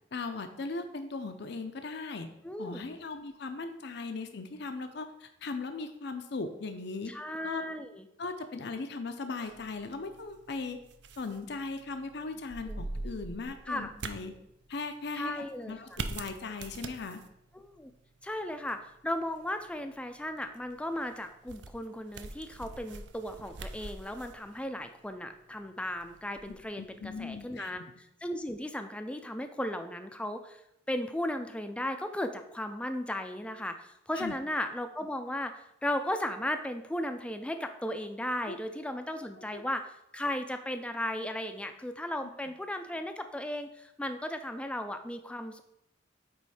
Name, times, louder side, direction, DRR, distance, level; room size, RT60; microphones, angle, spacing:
voice 1, 0.1-2.3 2.6-7.2 7.4-7.6 8.2-10.8 11.2-14.4 14.7-17.2 26.8-27.7 34.1-34.3 38.5-38.6 39.4-39.6, left 3 dB, 60° left, 8 dB, 0.5 m, -38 dB
voice 2, 2.4-2.9 7.1-8.1 12.7-12.8 13.7-13.9 15.1-15.8 17.5-17.9 18.2-27.8 28.2-30.6 30.9-39.8 40.1-45.6, left 1 dB, 5° left, 7 dB, 0.4 m, -36 dB
sound 1, 9.4-27.5, right 3 dB, 60° right, 0.5 m, -45 dB
8.5 x 3.1 x 4.8 m, 0.82 s
head